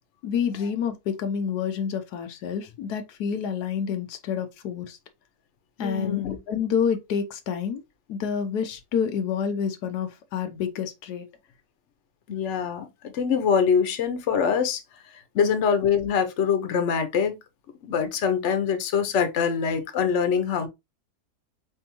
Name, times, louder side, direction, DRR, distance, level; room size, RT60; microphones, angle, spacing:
voice 1, 0.2-5.0 5.8-7.8 8.1-11.3 15.4-15.6, left 7 dB, 85° left, 1.3 m, -28 dB
voice 2, 5.8-6.4 12.3-14.8 15.3-17.3 17.8-20.7, left 7 dB, 55° left, 1.0 m, -24 dB
4.5 x 3.4 x 2.9 m
omnidirectional pair, 1.7 m